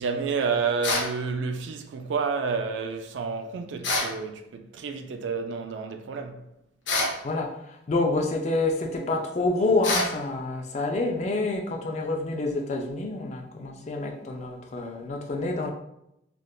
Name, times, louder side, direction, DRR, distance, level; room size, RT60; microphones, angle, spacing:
voice 1, 0.0-6.4, right 5 dB, 85° right, 0.3 m, -30 dB
sound 1, 0.8-1.1 3.8-4.2 6.9-7.2 9.8-10.2, left 2 dB, 85° left, 0.7 m, -26 dB
voice 2, 7.2-15.7, left 2 dB, 40° left, 0.4 m, -28 dB
3.5 x 2.4 x 2.3 m
head